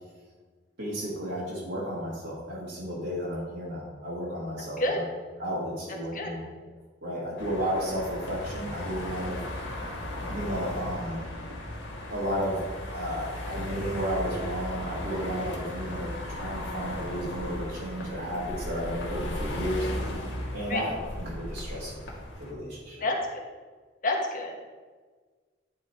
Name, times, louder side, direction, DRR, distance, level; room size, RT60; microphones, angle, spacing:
voice 1, 0.8-5.0 5.4-6.4 7.0-9.4 10.3-11.2 12.1-12.6 12.9-19.9 20.5-22.0 22.4-23.0, equal, 65° right, -8 dB, 1.9 m, -33 dB
sound 1, 7.4-22.5, left 1 dB, 90° left, 1.7 m, -36 dB
voice 2, 23.0-23.4 24.0-24.6, left 2 dB, 45° left, 0 dB, 1.3 m, -28 dB
10.0 x 3.8 x 4.5 m, 1.4 s
head